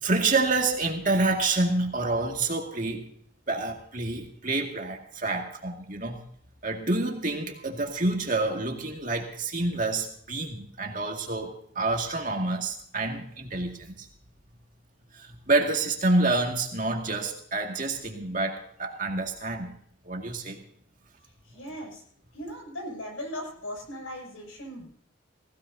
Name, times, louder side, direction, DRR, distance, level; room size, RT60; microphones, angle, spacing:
voice 1, 0.0-3.1 3.5-6.2 6.6-14.1 15.1-19.7 20.0-20.6, right 2 dB, 40° right, 2 dB, 2.1 m, -28 dB
voice 2, 21.5-22.0 22.3-24.9, equal, 85° left, 1 dB, 6.9 m, -38 dB
18.5 x 17.0 x 2.8 m, 0.62 s
head